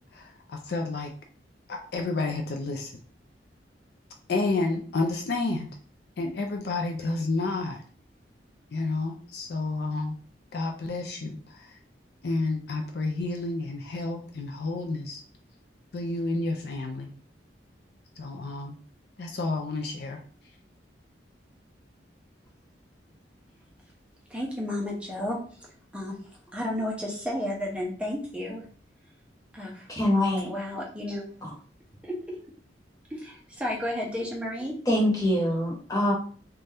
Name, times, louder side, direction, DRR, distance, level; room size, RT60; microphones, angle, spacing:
voice 1, 0.1-1.1 1.7-2.9 4.3-5.7 6.2-7.8 8.7-10.2 10.5-11.4 12.2-15.2 15.9-17.1 18.2-18.7 19.2-20.2, left 3 dB, 60° left, 3 dB, 0.4 m, -30 dB
voice 2, 24.3-26.2 26.5-28.6 29.5-29.9 30.4-31.3 32.0-32.4 33.1-34.8, left 1 dB, 5° right, -3 dB, 0.5 m, -32 dB
voice 3, 29.9-30.5 31.4-31.5 34.9-36.1, left 1 dB, 20° left, -2 dB, 1.0 m, -24 dB
2.6 x 2.2 x 3.3 m, 0.43 s
head